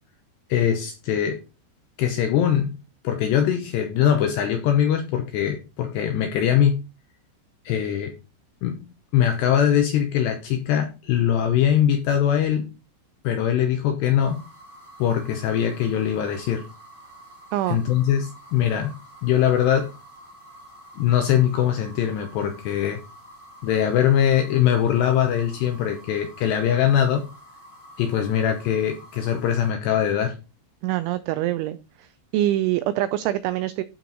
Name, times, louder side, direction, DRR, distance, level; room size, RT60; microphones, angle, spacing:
voice 1, 0.5-1.4 2.0-2.7 3.0-6.8 7.7-8.1 8.6-8.9 9.1-12.7 13.2-14.4 15.0-16.6 17.7-18.9 19.2-19.9 21.0-23.0 23.6-27.3 28.0-30.4, left 9 dB, 80° left, 5 dB, 2.5 m, -22 dB
sound 1, 14.2-29.7, right 1 dB, 25° left, 1.1 m, -48 dB
voice 2, 30.8-32.1 32.3-33.8, right 14 dB, 90° right, 12 dB, 2.6 m, -24 dB
12.0 x 4.6 x 4.0 m, 0.30 s
omnidirectional pair, 5.9 m